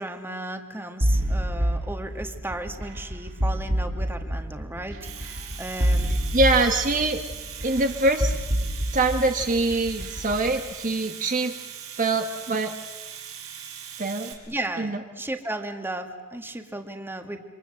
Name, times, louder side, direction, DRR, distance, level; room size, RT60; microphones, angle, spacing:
voice 1, 0.0-6.1 14.4-17.4, right 1 dB, 10° right, 6 dB, 1.8 m, -35 dB
sound 1, 1.0-10.5, equal, 60° right, 5.2 m, -27 dB
Domestic sounds home sounds, 4.8-14.3, right 9 dB, 75° right, 4.8 m, -40 dB
voice 2, 6.3-7.2 7.6-8.4 8.9-11.6 12.0-12.7 14.0-14.3 14.8-15.0, right 2 dB, 40° right, 5 dB, 1.2 m, -23 dB
28.0 x 26.0 x 7.6 m, 1.3 s
head